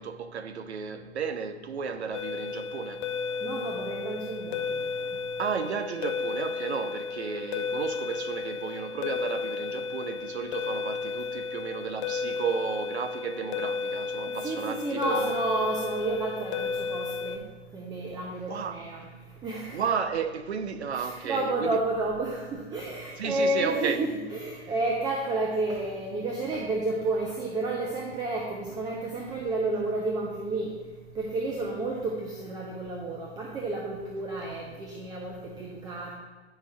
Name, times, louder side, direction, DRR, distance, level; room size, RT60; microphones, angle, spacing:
voice 1, 0.0-3.1 5.4-15.4 18.5-18.8 19.7-21.8 23.2-24.0, right 6 dB, 75° right, 0.8 m, -33 dB
sound 1, 2.1-17.4, left 5 dB, 30° left, 0.4 m, -33 dB
voice 2, 3.4-4.8 5.1-5.2 14.3-17.4 17.7-19.1 19.4-19.8 20.9-30.7 31.1-36.1, right 2 dB, 10° right, 0.6 m, -31 dB
9.6 x 5.7 x 3.4 m
hypercardioid pair, 125°, 33 cm